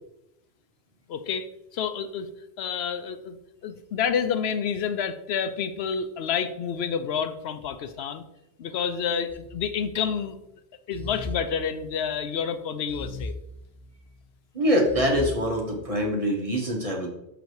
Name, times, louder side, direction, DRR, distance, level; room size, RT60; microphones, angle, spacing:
voice 1, 1.1-1.5 1.7-2.3 2.6-3.4 3.6-8.2 8.6-10.4 10.9-13.3, left 7 dB, 80° left, 10 dB, 0.8 m, -29 dB
sound 1, 9.3-10.3 10.9-12.2 12.9-14.2 14.9-16.0, left 2 dB, ahead, 0.5 m, -39 dB
voice 2, 14.5-17.1, equal, 35° right, -1 dB, 1.5 m, -24 dB
6.6 x 4.0 x 4.7 m, 0.86 s
omnidirectional pair, 1.1 m